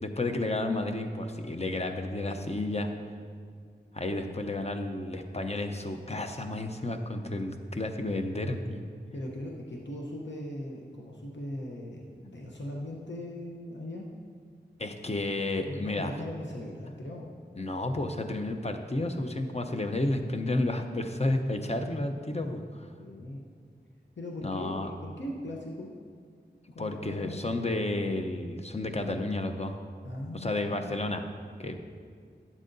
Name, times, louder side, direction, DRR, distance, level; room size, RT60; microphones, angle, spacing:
voice 1, 0.0-2.9 3.9-8.8 14.8-16.1 17.6-22.9 24.4-24.9 26.8-29.8 30.3-31.2 31.6-31.8, left 2 dB, 35° left, 5 dB, 0.7 m, -31 dB
voice 2, 9.1-14.1 15.6-17.4 23.0-23.4 24.2-24.7 25.0-25.9 26.7-27.4 30.0-30.8, left 1 dB, 75° left, -2 dB, 0.9 m, -39 dB
11.5 x 7.5 x 2.7 m, 2.1 s
wide cardioid pair, 40°, 19 cm